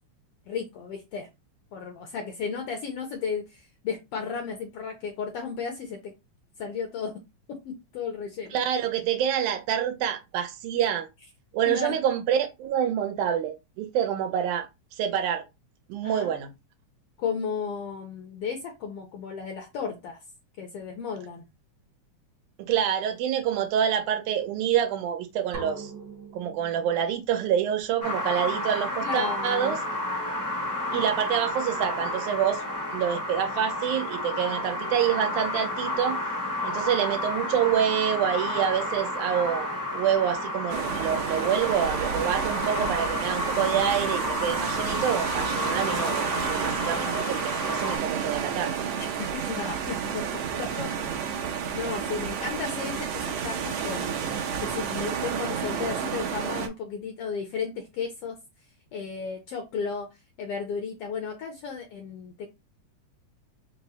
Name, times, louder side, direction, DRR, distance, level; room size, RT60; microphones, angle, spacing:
voice 1, 0.5-1.3 1.7-6.1 6.6-7.2 7.5-8.6 11.6-11.9 16.0-16.3 17.2-20.2 20.6-21.5 29.0-29.8 49.2-51.1 51.7-58.4 58.9-60.1 60.4-62.5, left 5 dB, 75° left, 1.4 m, -34 dB
voice 2, 8.5-11.1 11.5-14.7 15.0-15.4 15.9-16.5 22.6-25.9 26.3-29.8 30.9-32.6 32.9-36.2 36.6-48.7, right 9 dB, 90° right, 2.3 m, -27 dB
sound 1, 25.5-27.3, right 4 dB, 55° right, 1.1 m, -42 dB
sound 2, 28.0-48.0, left 1 dB, 20° left, 0.3 m, -31 dB
sound 3, 40.7-56.7, right 7 dB, 75° right, 1.8 m, -31 dB
5.2 x 2.0 x 4.1 m
omnidirectional pair, 3.4 m